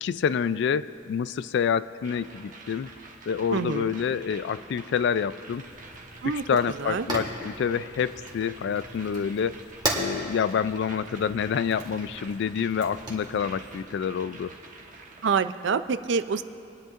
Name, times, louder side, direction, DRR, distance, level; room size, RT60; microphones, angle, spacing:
voice 1, 0.0-2.9 3.3-5.6 6.2-9.6 9.9-14.5, left 7 dB, 65° left, 16 dB, 0.3 m, -27 dB
sound 1, 2.0-15.4, right 3 dB, 45° right, 1.2 m, -47 dB
voice 2, 3.5-3.9 6.2-6.4 6.8-7.1 15.2-16.4, right 5 dB, 65° right, 12 dB, 0.4 m, -26 dB
Fire, 5.5-13.8, right 2 dB, 25° right, 1.6 m, -37 dB
25.0 x 10.5 x 2.5 m, 2.7 s
head